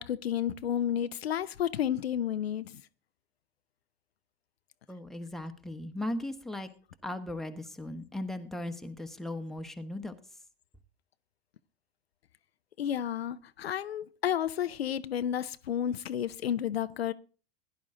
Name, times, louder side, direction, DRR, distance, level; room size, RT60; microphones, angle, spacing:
voice 1, 0.0-2.8 12.8-17.1, left 10 dB, 80° left, 0.6 m, -31 dB
voice 2, 4.9-6.7 7.0-10.1, left 1 dB, ahead, 1.2 m, -37 dB
16.0 x 10.5 x 3.8 m
hypercardioid pair, 90°, 30 cm